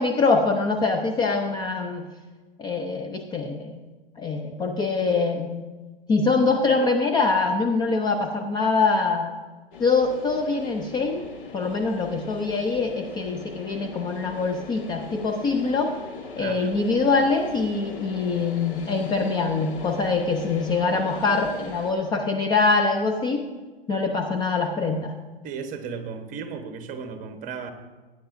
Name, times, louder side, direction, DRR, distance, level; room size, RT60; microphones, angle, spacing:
voice 1, 0.0-2.0 2.6-3.8 4.2-5.6 6.1-9.3 9.8-11.3 11.5-15.9 16.4-23.5 23.9-25.2, left 4 dB, 15° left, 3 dB, 0.6 m, -24 dB
sound 1, 9.7-21.9, left 4 dB, 65° left, 1.8 m, -40 dB
voice 2, 16.4-16.7 25.4-27.7, right 5 dB, 25° right, 7 dB, 1.2 m, -35 dB
17.5 x 9.3 x 2.6 m, 1.3 s
hypercardioid pair, 115°, 30 cm